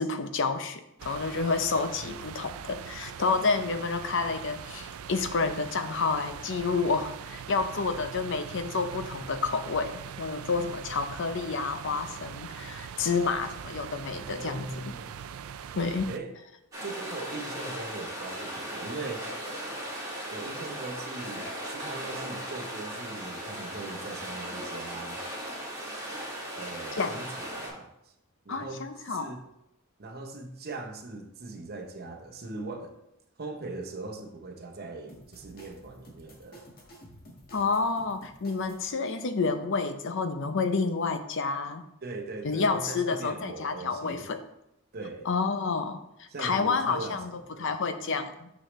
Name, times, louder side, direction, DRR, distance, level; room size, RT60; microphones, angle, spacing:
voice 1, 0.0-14.9 15.8-16.1 27.0-27.1 28.5-29.3 37.5-41.8 42.4-44.4 45.3-47.3 47.6-48.5, left 4 dB, 60° left, 9 dB, 0.6 m, -29 dB
sound 1, 1.0-16.2, right 8 dB, 80° right, 0.4 m, -42 dB
voice 2, 2.0-2.4 14.1-15.1 16.1-16.3 16.8-19.3 20.3-25.3 26.6-27.9 28.4-29.4 30.0-33.0 33.4-36.7 42.0-44.3 44.9-45.3 46.3-47.7, right 3 dB, 50° right, 5 dB, 0.9 m, -40 dB
sound 2, 16.7-27.7, right 1 dB, 15° right, 2.4 m, -37 dB
sound 3, 35.1-38.9, equal, 45° left, 1.6 m, -52 dB
6.3 x 6.3 x 3.2 m, 0.82 s
head